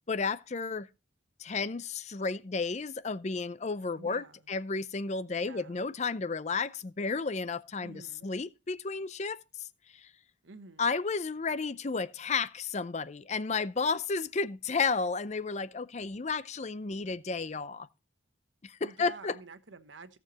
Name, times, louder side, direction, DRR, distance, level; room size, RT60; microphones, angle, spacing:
voice 1, 0.1-0.9 1.4-9.7 9.9-10.1 10.8-17.9 18.6-19.3, left 4 dB, 35° left, 0.5 m, -32 dB
voice 2, 3.9-4.5 5.3-5.9 7.8-8.3 10.4-10.9 18.8-20.2, right 3 dB, 75° right, 1.1 m, -49 dB
16.5 x 6.8 x 2.9 m
head